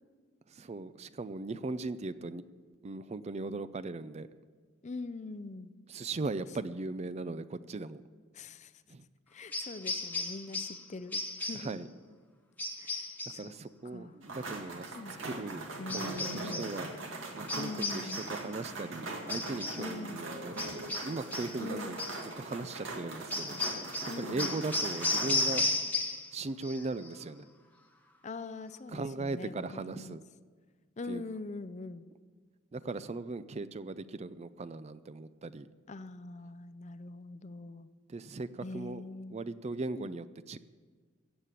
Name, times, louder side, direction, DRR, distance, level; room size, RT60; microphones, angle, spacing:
voice 1, 0.5-2.4 2.8-4.3 5.9-8.0 8.9-9.0 11.6-11.9 13.4-14.9 15.2-15.7 15.9-16.9 17.3-22.0 22.4-23.6 24.2-25.6 26.3-27.4 28.9-30.2 31.1-31.2 32.7-35.7 38.1-39.0 39.3-40.6, right 3 dB, 35° right, 14 dB, 0.4 m, -38 dB
voice 2, 4.8-5.7 6.4-6.5 8.3-8.7 9.3-11.8 12.8-13.5 13.9-14.1 14.9-15.2 15.8-16.7 17.5-18.2 19.8-20.2 21.6-21.9 24.0-24.6 28.2-30.2 31.0-32.1 35.9-37.9 38.6-39.4 39.9-40.1, left 3 dB, 35° left, 13 dB, 0.5 m, -43 dB
sound 1, 9.5-10.8 11.1-11.7 12.6-13.5 15.9-16.8 17.5-18.4 19.3-19.9 20.6-21.6 22.0-22.2 23.3-26.3 26.6-27.1, left 2 dB, 10° left, 1.2 m, -35 dB
sound 2, 14.2-25.6, right 2 dB, 80° right, 2.2 m, -41 dB
16.0 x 7.5 x 8.3 m, 1.5 s
head